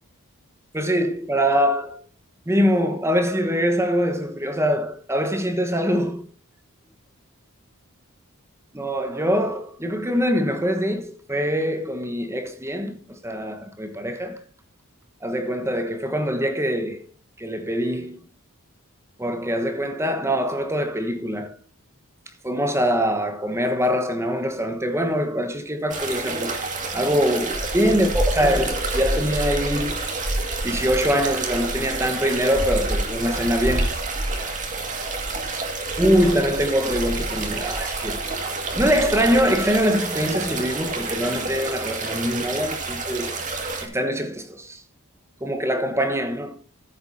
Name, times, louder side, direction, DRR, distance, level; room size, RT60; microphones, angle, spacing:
voice 1, 0.7-2.0 2.5-6.3 8.7-14.4 15.2-17.0 17.4-18.2 19.2-21.5 22.4-26.6 26.9-30.3 30.6-34.0 36.0-38.2 38.8-43.3 43.8-44.8 45.4-46.6, equal, 10° right, 1.1 m, -23 dB
sound 1, 25.9-43.9, right 2 dB, 35° right, 2.0 m, -28 dB
14.5 x 8.0 x 2.7 m
head